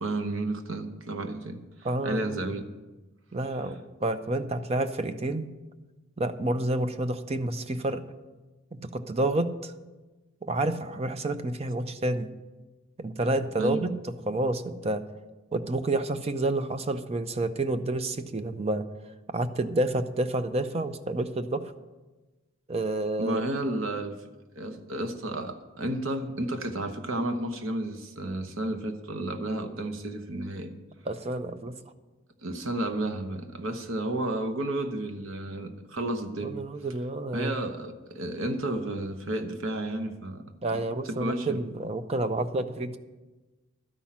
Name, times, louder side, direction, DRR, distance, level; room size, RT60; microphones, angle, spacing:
voice 1, 0.0-1.6 2.0-2.6 13.6-13.9 23.2-24.2 24.5-30.7 32.4-36.6 37.3-40.4 40.7-41.6, right 1 dB, 65° right, 7 dB, 1.0 m, -32 dB
voice 2, 1.8-2.4 3.3-5.5 6.2-8.0 8.7-9.7 10.4-12.3 13.0-13.9 14.3-15.0 15.5-18.9 19.3-21.7 22.7-23.5 31.1-31.7 36.4-37.5 40.6-43.0, right 2 dB, 30° right, 10 dB, 0.6 m, -29 dB
12.5 x 5.8 x 8.6 m, 1.2 s
head